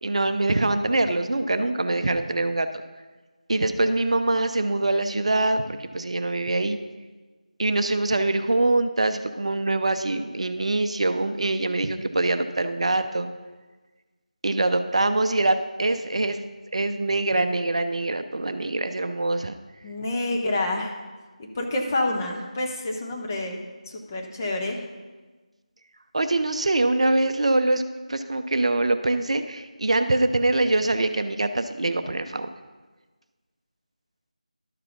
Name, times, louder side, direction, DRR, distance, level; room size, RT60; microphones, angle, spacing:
voice 1, 0.0-2.7 3.5-6.8 7.6-13.3 14.4-16.4 16.7-19.6 26.1-27.8 28.1-32.5, right 2 dB, 50° right, 9 dB, 0.5 m, -24 dB
voice 2, 19.8-20.9 21.4-23.6 23.9-24.8, left 2 dB, 25° left, 0 dB, 1.0 m, -28 dB
11.5 x 4.9 x 5.9 m, 1.3 s
figure-of-eight pair, 165°, 4 cm